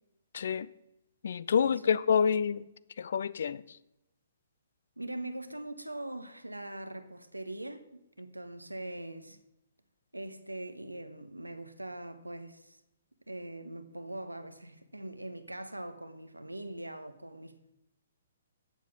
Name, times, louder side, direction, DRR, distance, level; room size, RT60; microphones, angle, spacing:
voice 1, 0.3-0.7 1.2-2.6 3.0-3.6, left 7 dB, 55° left, 0.4 m, -27 dB
voice 2, 1.6-2.0 5.0-9.4 10.1-12.8 13.3-17.7, right 1 dB, 85° right, 0.9 m, -42 dB
8.4 x 7.1 x 6.0 m
figure-of-eight pair, 125°, 0 cm